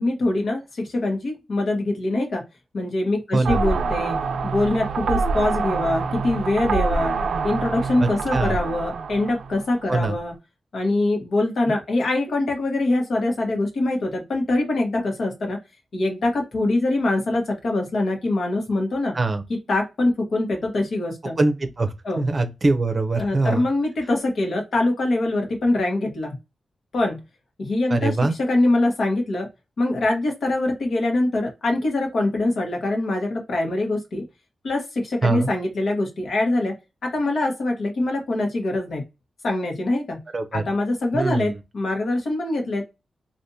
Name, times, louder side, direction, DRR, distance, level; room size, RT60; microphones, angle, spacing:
voice 1, 0.0-2.4 2.7-4.2 4.4-7.2 7.4-10.3 10.7-15.6 15.9-19.1 19.5-21.4 22.0-22.2 23.1-26.4 26.9-27.2 27.6-29.5 29.8-34.2 34.6-36.7 37.0-39.0 39.4-40.2 40.5-42.8, left 2 dB, 65° left, 1.3 m, -23 dB
sound 1, 3.4-10.2, right 4 dB, 85° right, 0.3 m, -26 dB
voice 2, 8.0-8.6 9.9-10.2 19.1-19.4 21.4-23.7 27.9-28.3 35.2-35.5 40.3-40.6 41.1-41.5, right 3 dB, 35° right, 0.6 m, -23 dB
3.4 x 2.5 x 2.7 m
wide cardioid pair, 100°, 0 cm